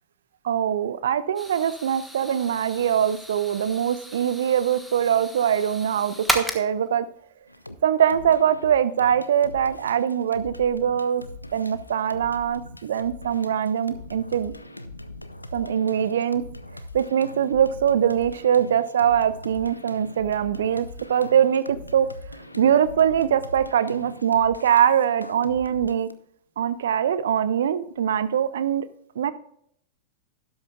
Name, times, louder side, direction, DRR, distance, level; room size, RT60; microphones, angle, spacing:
voice 1, 0.4-7.1 7.8-11.2 11.5-14.5 15.5-16.4 16.9-22.1 22.6-26.1 26.6-28.9 29.2-29.3, right 9 dB, 60° right, 14 dB, 0.7 m, -22 dB
sound 1, 1.4-6.9, equal, ahead, 1.4 m, -34 dB
sound 2, 7.5-7.8 8.1-26.1, left 1 dB, 85° left, 0.7 m, -41 dB
12.5 x 11.0 x 2.3 m, 0.68 s
figure-of-eight pair, 90°, 0 cm